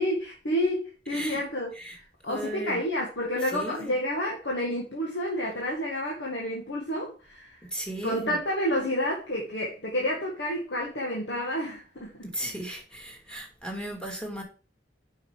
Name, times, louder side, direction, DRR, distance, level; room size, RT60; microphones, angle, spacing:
voice 1, 0.0-1.7 2.0-7.6 8.0-12.1, equal, 80° left, 2.0 m, -29 dB
voice 2, 1.1-1.4 1.8-2.0 2.3-2.8 3.5-3.9 7.7-8.3 12.2-14.4, right 1 dB, 5° left, 2.4 m, -36 dB
7.6 x 5.7 x 5.7 m
head